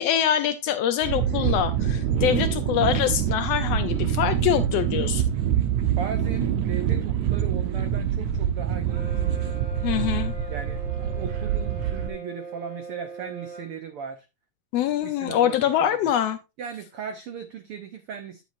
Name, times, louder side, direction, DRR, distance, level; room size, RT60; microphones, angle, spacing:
voice 1, 0.0-5.3 9.8-10.3 14.7-16.4, left 10 dB, 85° left, 1.4 m, -24 dB
sound 1, 1.0-12.1, right 9 dB, 70° right, 2.1 m, -25 dB
voice 2, 6.0-9.8 10.5-14.3 14.9-16.1 16.6-18.4, right 7 dB, 90° right, 1.2 m, -38 dB
Brass instrument, 8.9-13.8, right 4 dB, 15° right, 2.5 m, -40 dB
10.5 x 7.7 x 2.6 m
omnidirectional pair, 3.7 m